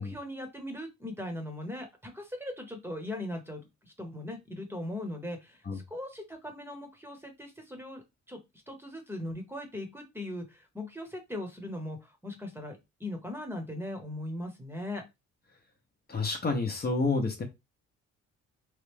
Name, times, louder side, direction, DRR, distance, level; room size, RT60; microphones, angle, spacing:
voice 1, 0.0-8.4 8.7-15.0, left 1 dB, 10° right, 4 dB, 1.0 m, -39 dB
voice 2, 16.1-17.4, left 3 dB, 30° left, 3 dB, 0.9 m, -29 dB
3.2 x 2.4 x 3.4 m, 0.22 s
cardioid pair, 90°, 30 cm